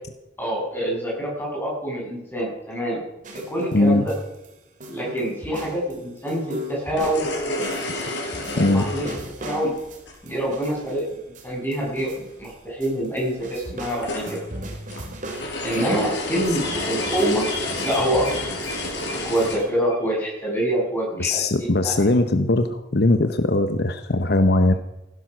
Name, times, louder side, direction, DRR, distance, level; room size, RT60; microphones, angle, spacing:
voice 1, 0.4-3.0 3.5-4.1 4.9-7.3 8.7-9.0 9.4-9.7 10.2-11.2 11.4-14.4 15.6-17.4 17.8-18.3 19.0-21.9, right 1 dB, 10° left, -3 dB, 7.2 m, -26 dB
sound 1, 3.2-4.5 4.8-12.5 12.8-16.1 16.4-19.6, equal, 50° right, 2.7 m, -39 dB
voice 2, 3.7-4.1 7.9-8.0 8.6-8.9 21.2-24.7, left 2 dB, 65° left, 9 dB, 0.8 m, -20 dB
sound 2, 6.8-10.3 12.0-12.1 12.4-12.5 13.3-19.6, left 1 dB, 90° left, 4.5 m, -30 dB
sound 3, 16.6-20.1 20.3-20.4 20.7-20.8, left 2 dB, 30° left, 6.7 m, -34 dB
16.5 x 11.0 x 6.1 m, 0.93 s
head